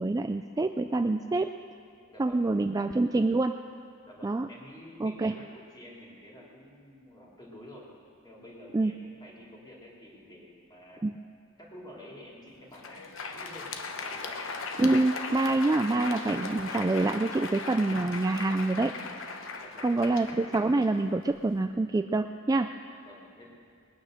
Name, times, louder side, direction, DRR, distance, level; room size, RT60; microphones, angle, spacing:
voice 1, 0.0-1.5 2.2-3.6 4.2-4.5 5.0-5.4 8.7-8.9 11.0-11.1 14.8-18.9 19.8-22.7, right 2 dB, 15° right, 7 dB, 0.3 m, -26 dB
voice 2, 2.1-2.4 4.0-7.9 8.2-11.0 11.6-13.7 14.1-14.4 19.6-20.2 23.0-23.5, left 1 dB, 20° left, -4 dB, 3.3 m, -49 dB
Crowd, 12.6-21.6, left 3 dB, 65° left, 1.1 m, -38 dB
21.0 x 9.8 x 6.6 m, 2.3 s
head